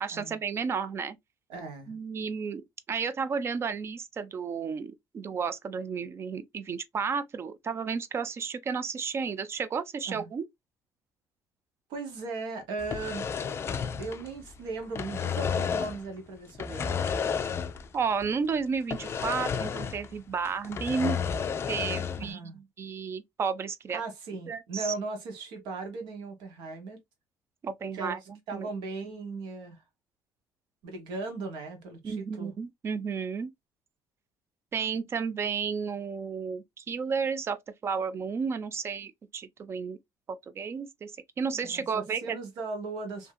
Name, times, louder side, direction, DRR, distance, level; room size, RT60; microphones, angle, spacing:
voice 1, 0.0-1.2 1.9-10.4 17.9-21.2 21.7-24.0 24.5-24.9 27.6-28.7 32.0-33.5 34.7-40.0 40.3-41.1 41.4-42.4, right 5 dB, 35° right, 0.4 m, -32 dB
voice 2, 1.5-2.0 10.1-10.3 11.9-13.3 14.0-16.9 22.2-22.6 23.9-27.0 27.9-29.8 30.8-32.5 41.5-43.3, right 3 dB, 80° right, 1.2 m, -38 dB
sound 1, 12.8-14.6 14.8-16.1 16.6-18.0 18.2-18.3 18.9-20.2 20.5-22.3, left 6 dB, 35° left, 0.3 m, -31 dB
2.7 x 2.7 x 2.3 m
cardioid pair, 115°, 8 cm